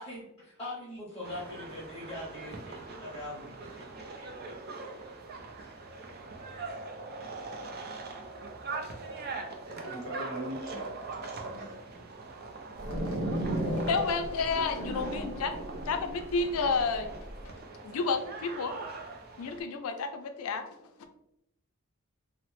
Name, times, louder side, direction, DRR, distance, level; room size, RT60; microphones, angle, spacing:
voice 1, 0.0-4.3 5.6-6.0, left 1 dB, 15° left, -6 dB, 0.7 m, -42 dB
sound 1, 1.2-19.6, right 3 dB, 45° right, 0.4 m, -42 dB
voice 2, 9.6-10.8 11.1-12.0 14.8-15.3, equal, 65° right, -2 dB, 1.0 m, -42 dB
sound 2, 12.8-17.4, right 1 dB, 90° right, 0.8 m, -35 dB
voice 3, 13.6-15.5 15.9-17.1 17.8-18.7 19.4-20.7, left 4 dB, 80° left, 8 dB, 0.4 m, -30 dB
2.9 x 2.0 x 3.1 m, 0.80 s
head